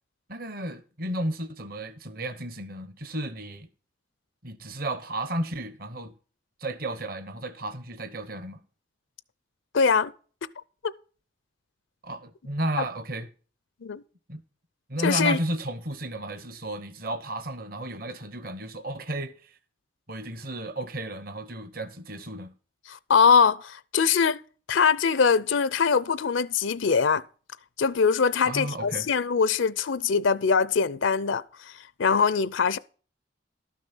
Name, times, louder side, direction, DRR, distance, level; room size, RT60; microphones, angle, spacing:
voice 1, 0.3-3.7 4.4-6.1 6.6-8.6 12.0-13.3 14.3-14.4 14.9-19.5 20.1-22.5 28.4-29.1, right 1 dB, 50° right, 1.1 m, -33 dB
voice 2, 9.7-10.1 13.8-14.0 15.0-15.4 22.9-24.4 24.7-27.2 27.8-31.7 32.0-32.8, left 5 dB, 80° left, 0.6 m, -22 dB
12.5 x 6.3 x 5.5 m
head